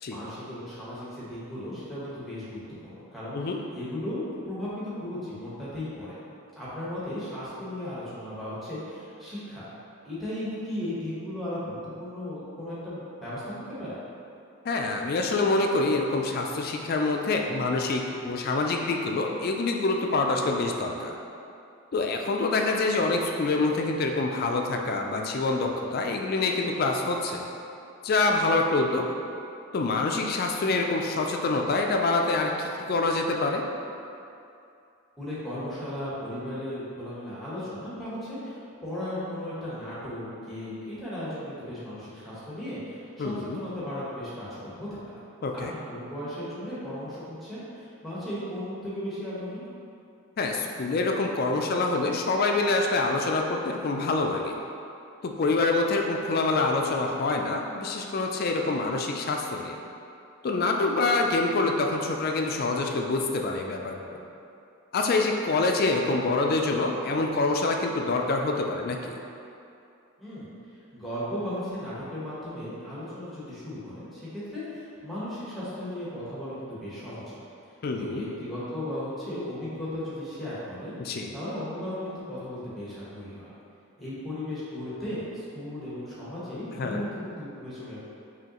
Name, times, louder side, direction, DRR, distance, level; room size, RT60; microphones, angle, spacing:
voice 1, 0.1-6.2 6.6-9.6 10.0-14.0 35.2-45.1 45.5-49.6 70.2-77.4 78.0-80.9 81.3-83.5 84.0-88.0, left 1 dB, ahead, -10 dB, 1.0 m, -36 dB
voice 2, 14.6-21.2 21.9-27.4 28.0-29.1 29.7-33.6 43.2-43.6 45.4-45.7 50.4-54.5 55.2-59.8 60.4-64.2 64.9-69.2 77.8-78.2 81.0-81.3 86.8-87.0, left 3 dB, 45° left, 2 dB, 0.3 m, -26 dB
5.2 x 2.8 x 2.9 m, 2.6 s
head